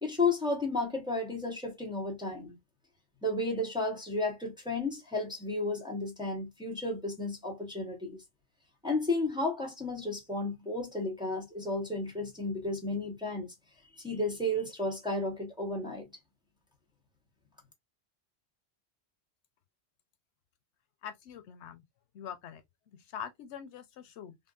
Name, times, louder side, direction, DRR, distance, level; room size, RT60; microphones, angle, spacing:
voice 1, 0.0-2.6 3.2-8.2 8.8-13.5 14.0-16.1, left 2 dB, 5° right, 0.9 m, -33 dB
voice 2, 21.0-21.8 22.1-22.6 22.9-24.4, left 8 dB, 90° left, 0.9 m, -44 dB
3.7 x 2.2 x 2.4 m
omnidirectional pair, 1.1 m